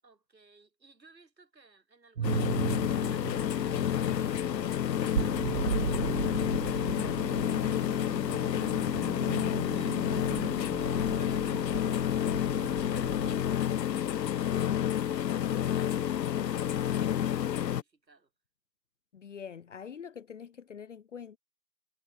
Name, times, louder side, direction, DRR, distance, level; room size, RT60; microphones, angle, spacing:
voice 1, 0.0-13.3 13.9-18.3, right 3 dB, 85° right, 7.5 m, -61 dB
sound 1, 2.2-17.8, left 10 dB, 80° left, 0.6 m, -29 dB
sound 2, 2.2-13.6, right 8 dB, 55° right, 0.5 m, -37 dB
sound 3, 2.9-10.4, left 11 dB, 15° left, 1.0 m, -58 dB
voice 2, 19.1-21.4, left 7 dB, 45° left, 1.2 m, -44 dB
figure-of-eight pair, 155°, 49 cm